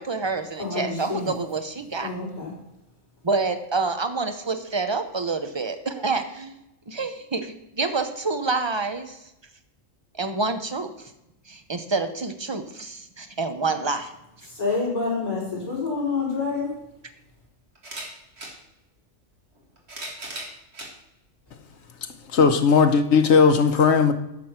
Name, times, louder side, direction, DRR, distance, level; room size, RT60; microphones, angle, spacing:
voice 1, 0.0-2.1 3.2-6.6 6.9-9.2 10.2-10.9 11.5-14.1, right 3 dB, 25° right, 0.7 m, -27 dB
voice 2, 0.6-1.3 2.0-2.5 14.4-16.7, left 4 dB, 30° left, 4.5 m, -27 dB
sound 1, 16.4-16.5 17.8-18.6 19.6-20.9 21.7-21.8 23.1-23.2, right 1 dB, 55° right, 2.2 m, -37 dB
voice 3, 22.3-24.1, left 5 dB, 60° left, 1.1 m, -17 dB
9.9 x 6.3 x 5.8 m
omnidirectional pair, 1.3 m